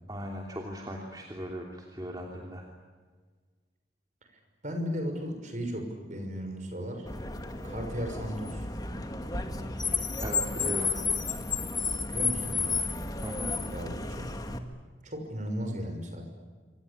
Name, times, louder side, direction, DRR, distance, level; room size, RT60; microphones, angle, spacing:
voice 1, 0.1-1.7 1.9-2.6 10.2-10.9 13.2-13.5, equal, 20° right, 0 dB, 3.0 m, -37 dB
voice 2, 4.6-7.1 7.6-8.7 12.1-12.8 13.7-14.5 15.0-16.3, equal, 40° right, 5 dB, 6.0 m, -35 dB
Car, 7.1-14.6, left 4 dB, 20° left, 1.9 m, -32 dB
27.0 x 26.0 x 8.5 m, 1.5 s
head